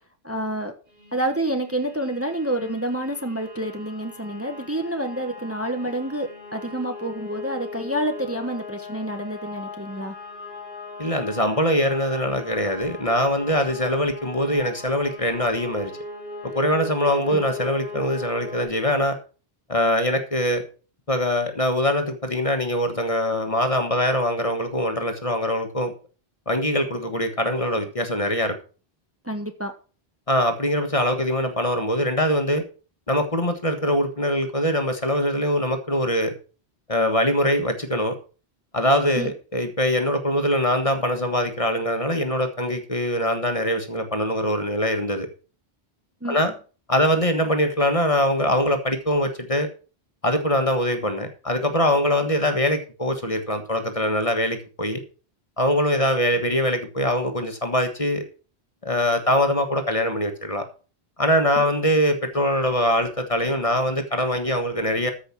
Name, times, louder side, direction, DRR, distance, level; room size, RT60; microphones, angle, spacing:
voice 1, 0.2-0.7 1.1-10.2 17.3-17.4 29.2-29.7 39.1-39.3 46.2-46.4 61.6-61.7, right 1 dB, 15° right, 6 dB, 1.2 m, -28 dB
sound 1, 1.0-18.7, left 3 dB, 50° right, 5.7 m, -39 dB
voice 2, 11.0-15.9 16.4-19.1 19.7-20.6 21.1-25.9 26.5-28.6 30.3-32.6 33.1-36.3 36.9-38.1 38.7-45.3 46.3-46.5 46.9-49.7 50.2-55.0 55.6-58.2 58.8-60.6 61.2-65.1, left 1 dB, 35° left, 6 dB, 1.6 m, -23 dB
14.0 x 5.6 x 6.0 m, 0.37 s
omnidirectional pair, 1.1 m